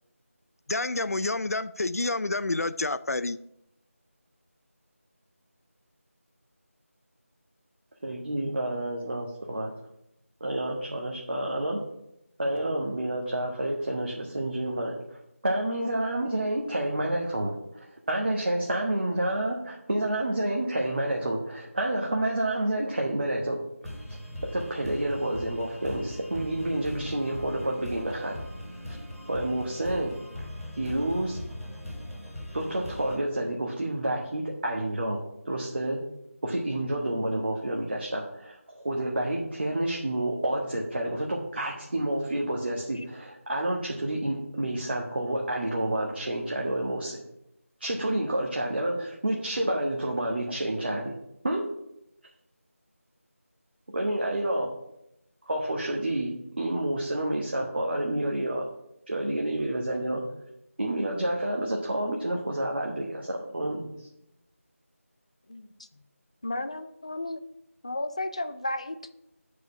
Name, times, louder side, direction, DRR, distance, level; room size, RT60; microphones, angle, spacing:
voice 1, 0.7-3.4, left 2 dB, 85° left, 0.4 m, -28 dB
voice 2, 8.0-9.7 10.4-11.8 12.4-14.9 15.4-17.5 18.1-23.6 23.8-23.9 24.5-28.4 28.9-29.0 29.3-30.1 30.8-31.4 32.5-35.2 35.4-36.0 36.4-47.2 47.8-51.1 51.4-51.6 53.9-54.7 55.5-56.3 56.6-58.7 59.1-60.2 60.8-63.9, right 1 dB, 45° right, 1.3 m, -29 dB
sound 1, 23.8-33.2, left 1 dB, ahead, 1.6 m, -40 dB
voice 3, 66.4-67.4 67.8-69.1, left 2 dB, 25° left, 0.4 m, -33 dB
7.7 x 5.0 x 6.8 m
figure-of-eight pair, 170°, 8 cm